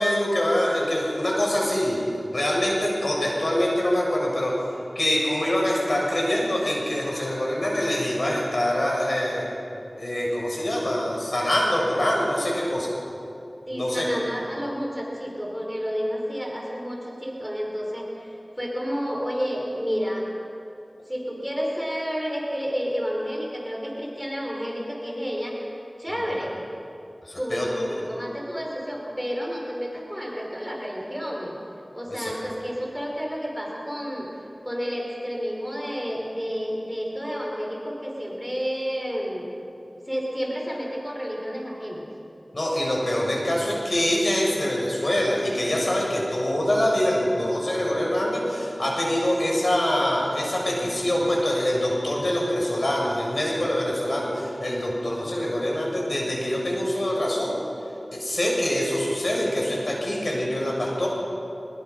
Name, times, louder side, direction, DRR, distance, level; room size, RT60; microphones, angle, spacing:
voice 1, 0.0-2.0 2.3-4.5 5.0-9.5 10.0-12.9 13.7-14.2 26.2-26.3 27.2-27.7 32.1-32.3 42.5-57.6 58.1-61.1, left 1 dB, 60° left, -3 dB, 7.0 m, -24 dB
voice 2, 13.7-20.2 21.1-25.6 26.0-26.6 27.4-31.6 31.9-34.3 34.6-39.5 40.0-42.1, equal, ahead, -2 dB, 5.0 m, -30 dB
24.0 x 22.5 x 5.6 m, 2.7 s
wide cardioid pair, 40°, 0 cm